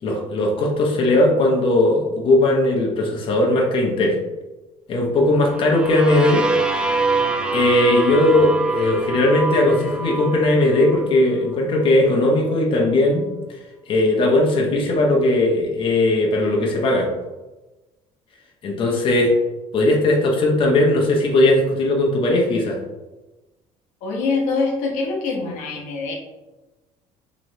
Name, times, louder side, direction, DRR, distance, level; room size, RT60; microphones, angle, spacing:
voice 1, 0.0-4.2 4.9-6.4 7.5-13.3 13.9-17.1 18.6-19.3 19.7-22.8, left 2 dB, 40° left, -1 dB, 0.7 m, -18 dB
sound 1, 5.4-11.2, right 4 dB, 5° right, 0.3 m, -24 dB
voice 2, 24.0-26.1, left 4 dB, 80° left, 0 dB, 0.8 m, -24 dB
3.0 x 3.0 x 2.6 m, 1.1 s
cardioid pair, 120°, 13 cm